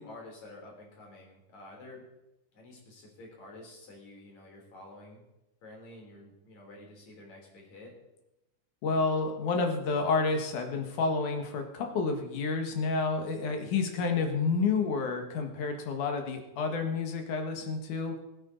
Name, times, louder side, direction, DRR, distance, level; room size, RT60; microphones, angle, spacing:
voice 1, 0.0-2.0 2.5-5.2 5.6-7.9, left 2 dB, 70° left, -1 dB, 4.7 m, -49 dB
voice 2, 8.8-18.2, left 4 dB, 85° left, 4 dB, 3.1 m, -29 dB
21.0 x 8.8 x 3.9 m, 0.94 s
omnidirectional pair, 3.4 m